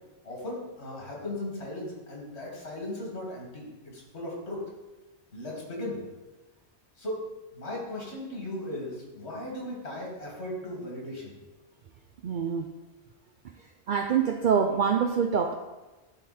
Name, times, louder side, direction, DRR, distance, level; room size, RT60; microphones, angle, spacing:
voice 1, 0.2-4.6 5.3-6.0 7.0-7.3 7.5-11.3, left 1 dB, 80° left, -3 dB, 2.3 m, -37 dB
voice 2, 12.2-12.7 13.9-15.5, right 7 dB, 55° right, 4 dB, 0.6 m, -25 dB
12.0 x 4.0 x 4.2 m, 1.1 s
omnidirectional pair, 1.1 m